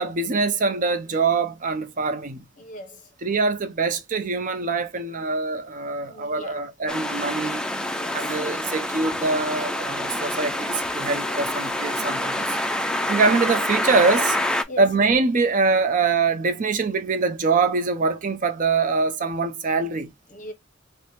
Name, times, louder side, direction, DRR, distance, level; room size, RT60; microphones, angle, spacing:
voice 1, 0.0-2.5 3.2-7.6 8.1-12.6 13.1-14.4 14.8-20.1, right 4 dB, 40° right, 0.6 m, -23 dB
voice 2, 2.6-3.0 6.0-6.6 7.9-8.3 11.2-11.4 14.7-14.9 20.3-20.5, equal, 40° left, 0.7 m, -39 dB
sound 1, 6.9-14.6, left 1 dB, 5° left, 0.4 m, -27 dB
3.3 x 2.1 x 4.1 m
head